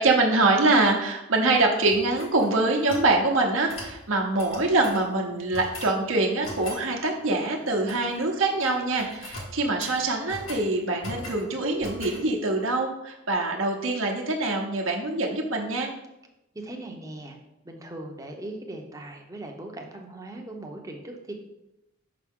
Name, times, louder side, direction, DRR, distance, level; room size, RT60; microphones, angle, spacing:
voice 1, 0.0-15.9, right 2 dB, 65° right, 1 dB, 0.9 m, -24 dB
sound 1, 1.9-3.1 3.7-4.0 4.4-5.1 5.5-6.0 6.4-6.8 7.7-8.2 8.5-8.7 9.0-10.7 11.0-11.5 11.8-12.2, left 1 dB, 70° left, 1.6 m, -40 dB
voice 2, 16.5-17.4 17.6-21.3, right 1 dB, 15° right, 2 dB, 0.7 m, -39 dB
5.9 x 5.6 x 3.6 m, 0.91 s
head